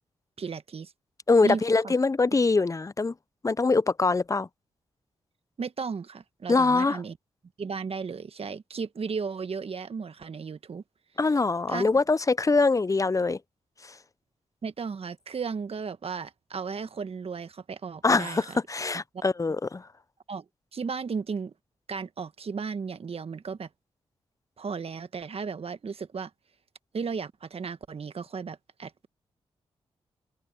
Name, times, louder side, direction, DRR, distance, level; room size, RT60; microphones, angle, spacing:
voice 1, 0.4-0.9 1.4-1.9 5.6-7.2 7.6-10.8 11.7-11.9 14.6-18.6 20.3-20.4 20.7-21.5 21.9-23.7 24.6-26.3 26.9-29.1, right 5 dB, 55° right, 1.5 m, -35 dB
voice 2, 1.3-3.1 3.4-4.5 6.5-7.0 11.2-13.4 13.8-13.9 18.0-19.9, left 3 dB, 30° left, 0.6 m, -23 dB
open air
supercardioid pair, 40°, 12 cm